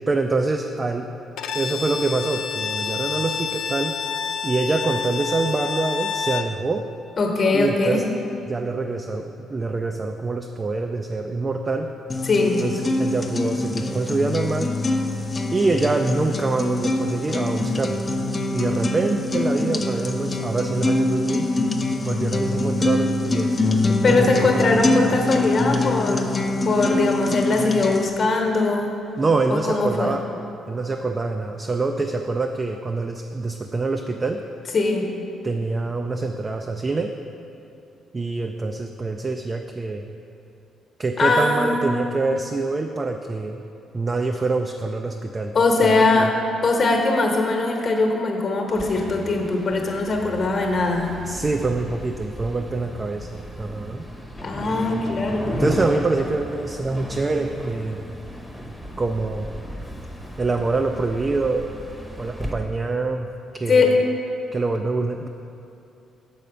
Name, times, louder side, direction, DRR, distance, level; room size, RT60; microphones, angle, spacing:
voice 1, 0.1-1.1 1.5-3.9 4.4-6.9 7.5-8.0 8.5-11.9 12.6-14.7 15.5-18.0 18.5-21.5 22.0-25.2 29.2-30.2 30.7-34.4 35.4-37.1 38.1-40.1 41.0-43.6 43.9-45.5 45.8-46.3 51.2-54.1 55.5-58.1 59.0-59.5 60.4-61.7 62.2-63.3 63.6-63.9 64.5-65.3, right 3 dB, 30° right, 4 dB, 0.3 m, -25 dB
Bowed string instrument, 1.4-6.6, left 7 dB, 85° left, 0.3 m, -28 dB
voice 2, 7.2-8.0 12.2-12.6 24.0-28.9 29.5-30.2 34.7-35.1 41.2-41.8 45.5-46.3 46.6-51.1 54.4-55.6 63.7-63.9, left 3 dB, 50° left, 2 dB, 1.1 m, -21 dB
sound 1, 12.1-28.1, left 2 dB, 30° left, 0.5 m, -24 dB
sound 2, 48.7-62.5, equal, ahead, 0.8 m, -34 dB
6.7 x 5.6 x 5.0 m, 2.8 s
cardioid pair, 90°, 0 cm